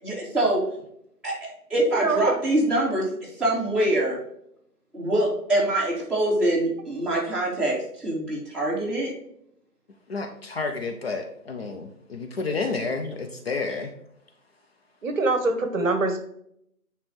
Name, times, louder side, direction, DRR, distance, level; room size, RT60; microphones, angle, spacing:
voice 1, 0.0-0.6 1.2-4.2 4.9-9.1, right 1 dB, ahead, -12 dB, 2.9 m, -24 dB
voice 2, 1.9-2.4 15.0-16.2, right 3 dB, 60° right, 7 dB, 1.2 m, -24 dB
voice 3, 10.1-13.9, left 4 dB, 40° left, 4 dB, 0.8 m, -30 dB
9.6 x 3.4 x 4.5 m, 0.73 s
hypercardioid pair, 155°, 45 cm